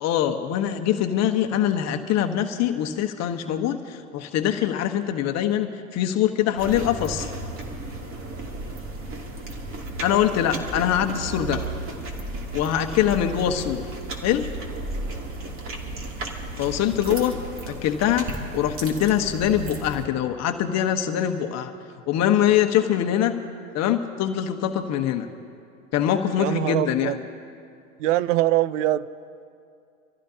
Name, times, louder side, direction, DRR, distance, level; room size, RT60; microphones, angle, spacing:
voice 1, 0.0-7.3 10.0-11.7 12.5-13.9 14.2-14.5 16.6-21.7 22.1-23.4 23.7-25.3 25.9-27.2, left 10 dB, 40° left, 1.2 m, -23 dB
sound 1, 6.6-20.1, right 2 dB, 30° right, 2.7 m, -34 dB
voice 2, 26.4-27.2 28.0-29.1, right 14 dB, 60° right, 0.7 m, -23 dB
27.0 x 15.0 x 2.9 m
hypercardioid pair, 100°, 41 cm